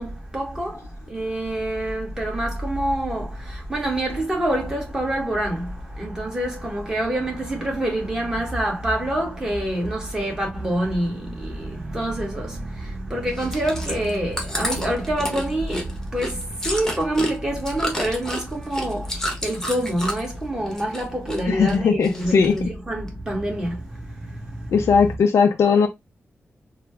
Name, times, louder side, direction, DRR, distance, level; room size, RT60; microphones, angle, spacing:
voice 1, 0.0-25.0, right 1 dB, 15° right, 1.7 m, -26 dB
Chewing mastication, 13.3-20.4 20.7-21.4 21.7-22.6 23.1-23.2, left 1 dB, 10° left, 1.2 m, -30 dB
voice 2, 21.5-22.5 24.7-25.9, left 5 dB, 90° left, 0.5 m, -18 dB
3.9 x 2.2 x 3.4 m
wide cardioid pair, 105°, 5 cm